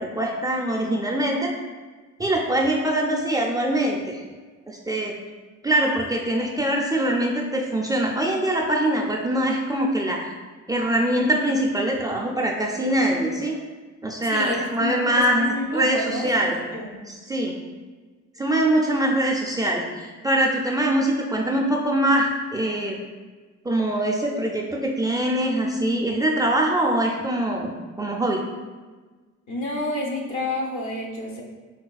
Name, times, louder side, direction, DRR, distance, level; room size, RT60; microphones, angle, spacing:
voice 1, 0.0-1.5 2.2-4.2 4.7-5.2 5.6-10.3 10.7-13.5 14.0-16.6 17.1-17.6 18.4-23.0 23.6-28.4, right 1 dB, 15° right, -1 dB, 0.3 m, -23 dB
voice 2, 14.2-16.3 16.6-16.9 29.5-31.4, left 1 dB, 75° left, -1 dB, 0.8 m, -29 dB
4.0 x 2.3 x 2.3 m, 1.4 s
cardioid pair, 90°, 30 cm